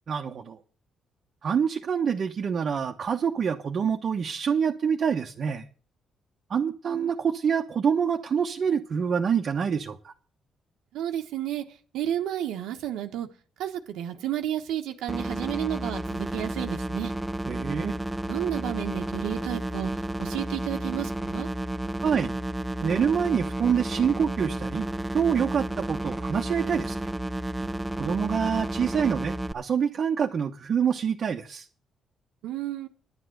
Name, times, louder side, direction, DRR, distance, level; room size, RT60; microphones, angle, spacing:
voice 1, 0.1-0.6 1.4-5.6 6.5-10.1 17.5-18.0 22.0-22.3 22.8-24.9 25.1-27.1 28.0-31.7, right 7 dB, 50° right, 2 dB, 1.0 m, -26 dB
voice 2, 10.9-11.6 11.9-13.3 13.6-17.1 18.3-19.9 20.2-21.5 32.4-32.9, right 11 dB, 90° right, 5 dB, 1.2 m, -31 dB
sound 1, 15.1-29.5, right 1 dB, 10° right, 0.8 m, -32 dB
11.0 x 8.0 x 7.8 m, 0.41 s
cardioid pair, 90°, 0 cm